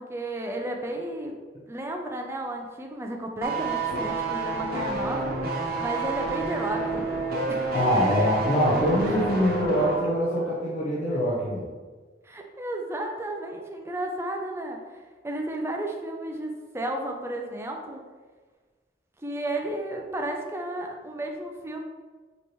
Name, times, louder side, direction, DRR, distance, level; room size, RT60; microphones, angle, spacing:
voice 1, 0.0-1.3 1.7-5.3 5.8-6.9 7.5-7.6 12.2-14.8 15.2-18.0 19.2-21.8, right 1 dB, 15° right, 2 dB, 0.5 m, -32 dB
sound 1, 3.4-10.1 10.4-10.5, right 3 dB, 55° right, 0.7 m, -29 dB
voice 2, 7.7-11.7, equal, 45° left, -7 dB, 0.7 m, -24 dB
5.2 x 3.0 x 3.1 m, 1.4 s
head